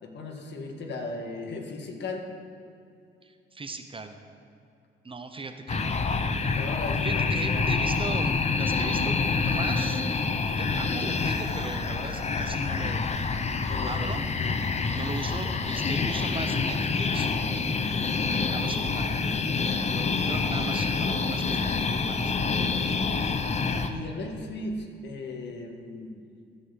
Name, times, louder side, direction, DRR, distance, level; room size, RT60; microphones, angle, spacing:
voice 1, 0.0-2.3 6.5-7.7 11.0-11.1 13.7-14.1 20.2-20.6 23.6-26.2, left 3 dB, 65° left, 2 dB, 1.7 m, -37 dB
voice 2, 3.2-4.2 5.0-6.0 6.8-10.0 10.6-13.1 13.9-14.2 14.9-17.8 18.3-19.2 19.9-22.2, right 3 dB, 25° right, 7 dB, 0.8 m, -38 dB
sound 1, 5.7-23.9, left 4 dB, 35° left, 0.8 m, -27 dB
13.5 x 5.4 x 7.6 m, 2.3 s
cardioid pair, 90°, 20 cm